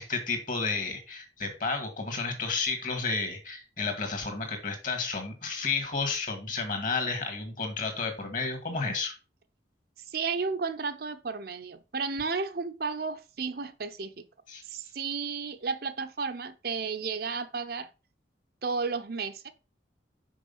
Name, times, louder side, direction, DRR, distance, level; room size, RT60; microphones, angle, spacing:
voice 1, 0.0-9.1 14.5-14.6, left 4 dB, 45° left, 2.0 m, -31 dB
voice 2, 10.1-14.3 14.7-17.9 18.6-19.5, right 4 dB, 50° right, 0.6 m, -33 dB
6.2 x 5.0 x 5.5 m
head